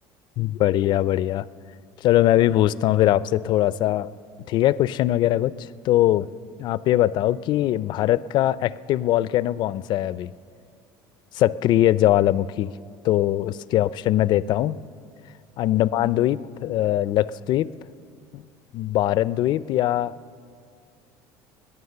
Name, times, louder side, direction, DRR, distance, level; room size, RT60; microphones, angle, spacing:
voice 1, 0.4-1.5 2.0-4.1 4.5-6.3 6.6-10.3 11.3-12.7 13.0-14.8 15.6-17.7 18.3-18.4 18.7-20.1, left 13 dB, 55° left, 18 dB, 0.4 m, -21 dB
22.5 x 9.2 x 6.7 m, 2.3 s
supercardioid pair, 110°, 9 cm